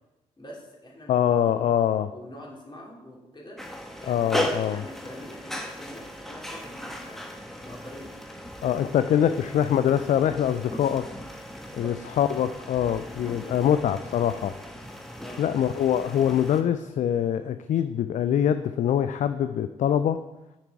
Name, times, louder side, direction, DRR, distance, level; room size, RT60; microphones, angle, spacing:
voice 1, 0.4-1.7 2.1-3.6 4.0-7.4 7.6-8.1 9.0-9.3 11.6-11.9 13.4-13.7 15.2-15.4, left 1 dB, 30° left, -3 dB, 2.6 m, -44 dB
voice 2, 1.1-2.1 4.1-4.8 8.6-11.0 11.7-14.5 15.4-20.2, left 9 dB, 50° left, 11 dB, 0.4 m, -24 dB
sound 1, 3.6-16.6, equal, ahead, 1.1 m, -37 dB
8.8 x 4.6 x 4.6 m, 1.0 s
hypercardioid pair, 45°, 16 cm